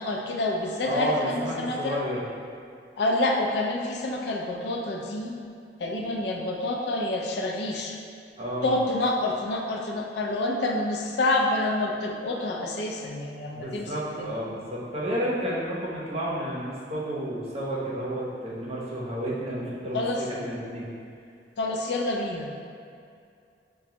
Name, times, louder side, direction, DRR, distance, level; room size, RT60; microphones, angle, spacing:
voice 1, 0.0-2.0 3.0-5.4 5.8-8.0 8.6-13.9 14.2-14.3 19.9-20.2 21.6-22.5, left 2 dB, 75° left, 1 dB, 0.4 m, -28 dB
voice 2, 0.8-2.3 8.4-8.7 13.5-20.9, equal, 35° right, -6 dB, 0.8 m, -31 dB
6.0 x 2.2 x 2.8 m, 2.4 s
head